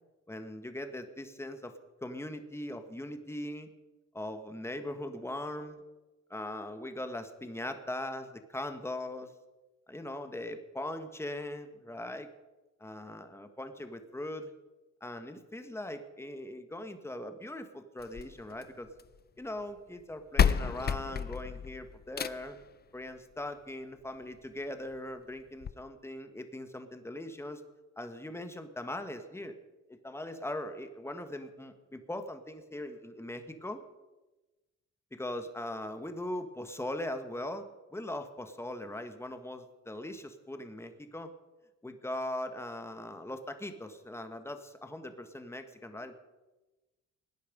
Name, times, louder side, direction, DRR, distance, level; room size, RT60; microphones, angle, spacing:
voice 1, 0.3-1.7 2.0-3.7 4.1-5.8 6.3-9.3 9.9-12.3 12.8-14.5 15.0-18.9 19.4-22.6 22.9-27.6 28.0-29.5 29.9-33.8 35.1-37.7 37.9-41.3 41.8-46.1, left 1 dB, 10° left, 8 dB, 1.5 m, -40 dB
sound 1, 18.0-19.2 20.0-20.1 20.4-22.6 24.0-24.1 24.6-24.7 24.9-25.0 25.6-25.7, left 7 dB, 35° left, 0.5 m, -30 dB
18.0 x 10.0 x 5.3 m, 1.1 s
cardioid pair, 90°, 30 cm